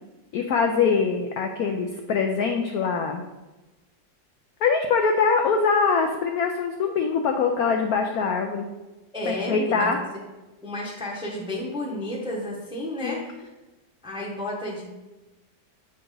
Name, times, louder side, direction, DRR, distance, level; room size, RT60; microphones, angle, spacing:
voice 1, 0.3-3.2 4.6-8.7 9.3-10.0 13.0-13.2, left 5 dB, 75° left, 3 dB, 0.8 m, -23 dB
voice 2, 9.1-10.2 10.6-13.5 14.0-14.8, left 1 dB, 5° right, -3 dB, 0.6 m, -32 dB
7.9 x 3.9 x 3.8 m, 1.1 s
omnidirectional pair, 2.1 m